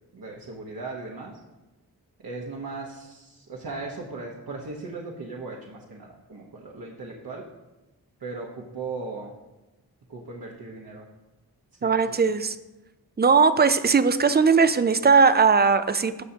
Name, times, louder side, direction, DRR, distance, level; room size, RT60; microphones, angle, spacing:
voice 1, 0.1-1.4 2.2-7.4 8.2-9.3 10.1-11.1 11.8-12.2, right 3 dB, 65° right, -2 dB, 1.1 m, -37 dB
voice 2, 11.8-12.6 13.2-16.2, right 5 dB, 25° right, 12 dB, 0.4 m, -19 dB
14.5 x 5.7 x 2.8 m, 1.1 s
wide cardioid pair, 70°, 39 cm